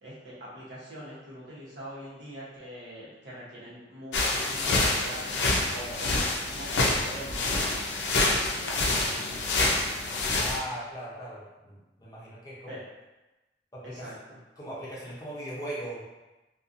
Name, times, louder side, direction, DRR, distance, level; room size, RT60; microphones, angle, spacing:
voice 1, 0.0-5.4 5.7-7.6 8.1-9.2 12.7-12.8 13.8-14.4, equal, 75° right, -7 dB, 1.0 m, -43 dB
sound 1, 4.1-10.6, left 2 dB, 75° left, 0.4 m, -27 dB
voice 2, 10.3-12.6 13.7-14.1 14.6-16.0, right 1 dB, 20° left, -7 dB, 0.6 m, -39 dB
2.6 x 2.3 x 2.5 m, 1.1 s
head